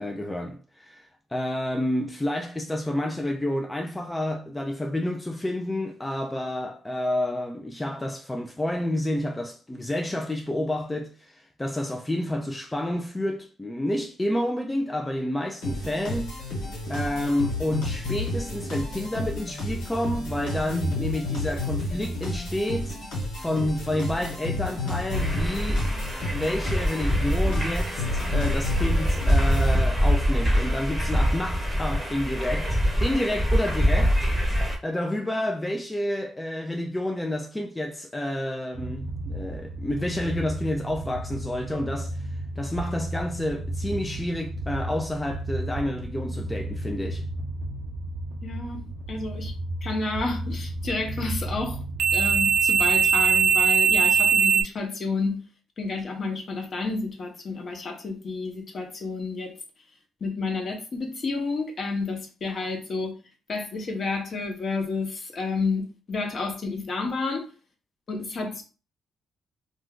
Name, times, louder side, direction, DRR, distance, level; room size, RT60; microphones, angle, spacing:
voice 1, 0.0-16.3 16.9-23.0 23.4-25.9 26.3-34.3 34.8-47.3, left 1 dB, 15° left, 0.4 m, -29 dB
sound 1, 15.6-30.2, left 1 dB, 90° left, 1.3 m, -31 dB
sound 2, 25.1-34.8, equal, 5° right, 0.9 m, -24 dB
sound 3, 38.7-54.6, right 5 dB, 70° right, 0.5 m, -27 dB
voice 2, 48.4-49.5 49.8-51.8 52.1-55.5 55.8-59.5 60.2-63.1 63.5-67.5 68.1-68.6, left 3 dB, 45° left, 0.9 m, -30 dB
2.5 x 2.3 x 3.6 m
cardioid pair, 90°, 0 cm